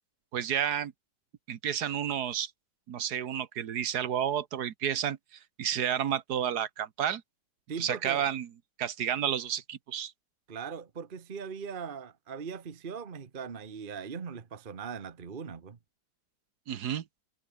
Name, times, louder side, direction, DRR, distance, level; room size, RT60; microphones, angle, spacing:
voice 1, 0.3-0.9 1.5-2.5 2.9-5.2 5.6-7.2 7.8-8.5 8.8-10.1 16.7-17.0, right 9 dB, 75° right, 1.6 m, -31 dB
voice 2, 7.7-8.3 10.5-15.8, right 6 dB, 35° right, 1.2 m, -39 dB
omnidirectional pair, 1.7 m